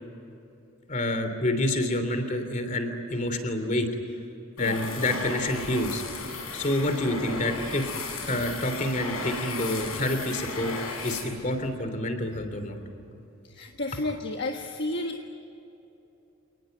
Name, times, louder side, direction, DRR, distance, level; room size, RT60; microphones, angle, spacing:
voice 1, 0.9-3.9 4.6-6.0 6.5-7.9 8.3-10.7 11.0-12.8, left 1 dB, 35° left, 7 dB, 3.2 m, -28 dB
sound 1, 4.6-11.7, left 3 dB, 90° left, 6.3 m, -35 dB
voice 2, 13.4-15.2, left 2 dB, 50° left, 3 dB, 1.4 m, -31 dB
28.5 x 19.5 x 9.3 m, 2.9 s
head